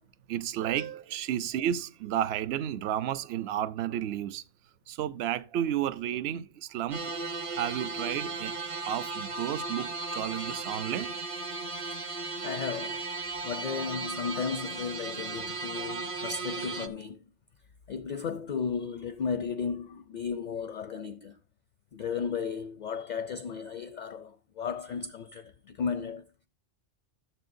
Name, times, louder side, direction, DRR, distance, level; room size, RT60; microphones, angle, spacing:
voice 1, 0.3-4.4 4.9-7.2 7.5-8.5 8.9-11.2, right 11 dB, 65° right, 0.8 m, -32 dB
sound 1, 6.9-16.9, right 3 dB, 35° right, 0.6 m, -36 dB
voice 2, 12.4-13.0 13.4-17.2 17.9-21.4 21.9-26.3, left 6 dB, 55° left, 0.5 m, -34 dB
14.5 x 7.0 x 2.6 m
omnidirectional pair, 1.2 m